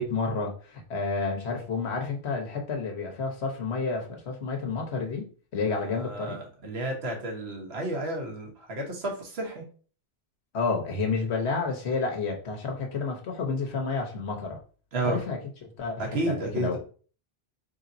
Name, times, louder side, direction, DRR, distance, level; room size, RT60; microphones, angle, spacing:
voice 1, 0.0-5.3 5.5-6.4 10.5-14.6 15.0-16.8, left 4 dB, 85° left, 1 dB, 1.2 m, -30 dB
voice 2, 5.7-9.6 14.9-15.2 16.0-16.8, right 1 dB, 75° right, 0 dB, 1.3 m, -32 dB
4.1 x 3.4 x 2.6 m, 0.40 s
omnidirectional pair, 1.1 m